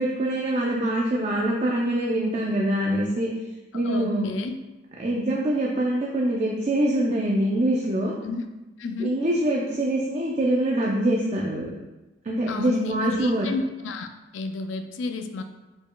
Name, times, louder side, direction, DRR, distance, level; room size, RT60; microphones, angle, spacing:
voice 1, 0.0-3.3 3.7-4.3 5.0-8.1 9.0-11.7 12.2-13.5, right 1 dB, 35° right, -2 dB, 0.4 m, -24 dB
voice 2, 3.7-4.5 8.2-8.4 8.8-9.1 12.5-14.1 14.3-15.4, left 4 dB, 80° left, 7 dB, 0.4 m, -31 dB
4.9 x 4.6 x 2.2 m, 1.1 s
head